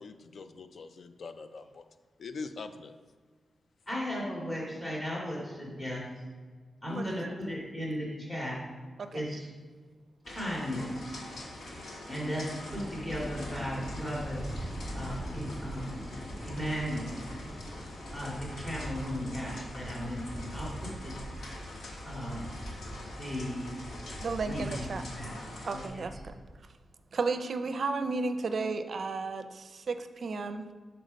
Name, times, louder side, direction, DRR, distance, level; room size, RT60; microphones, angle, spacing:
voice 1, 0.0-1.8 2.2-2.9, left 4 dB, 60° left, 9 dB, 0.5 m, -43 dB
voice 2, 3.9-6.0 6.8-8.6 9.1-9.5 10.3-11.2 12.1-14.4 14.9-16.0 16.4-17.1 18.1-21.2 22.0-22.5 23.2-23.7 24.4-25.4 25.7-26.1, equal, 25° left, -5 dB, 2.1 m, -36 dB
voice 3, 6.9-7.3 9.0-9.2 24.2-25.0 25.6-26.3 27.1-30.7, right 4 dB, 50° right, 9 dB, 0.5 m, -33 dB
sound 1, 10.2-25.9, left 1 dB, 90° left, 1.4 m, -45 dB
sound 2, 12.7-26.6, equal, 5° left, 0.8 m, -43 dB
6.5 x 4.5 x 5.1 m, 1.5 s
wide cardioid pair, 125°, 0 cm